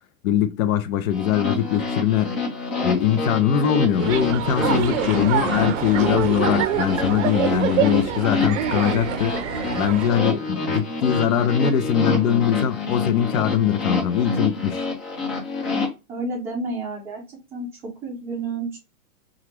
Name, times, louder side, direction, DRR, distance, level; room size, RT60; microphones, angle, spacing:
voice 1, 0.2-2.3 2.8-9.4 9.7-14.8, left 9 dB, 70° left, 0.6 m, -22 dB
sound 1, 1.1-15.9, left 3 dB, 40° left, 1.2 m, -27 dB
sound 2, 4.0-10.1, right 10 dB, 60° right, 0.5 m, -26 dB
voice 2, 16.1-18.8, right 3 dB, 5° right, 0.5 m, -31 dB
2.8 x 2.4 x 3.2 m
supercardioid pair, 160°, 42 cm